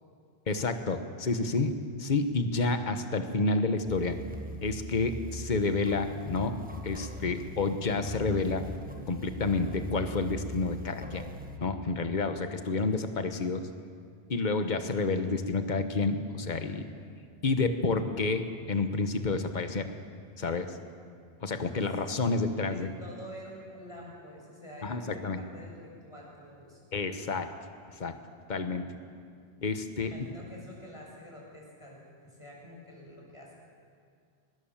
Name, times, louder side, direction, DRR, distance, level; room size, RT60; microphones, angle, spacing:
voice 1, 0.5-1.7 2.0-4.2 4.6-6.6 6.8-8.6 9.1-11.2 11.6-13.6 14.3-16.8 17.4-19.9 20.4-20.7 21.4-22.9 24.8-25.4 26.9-27.5 28.0-28.2 28.5-28.9 29.6-30.1, left 3 dB, 45° left, 8 dB, 1.4 m, -29 dB
sound 1, 3.9-11.6, right 1 dB, 10° right, 1.5 m, -41 dB
voice 2, 7.2-7.6 14.5-15.0 22.0-22.2 22.6-26.9 28.7-29.2 30.0-33.5, equal, 30° left, -3 dB, 6.7 m, -48 dB
23.5 x 20.5 x 7.4 m, 2.2 s
omnidirectional pair, 1.1 m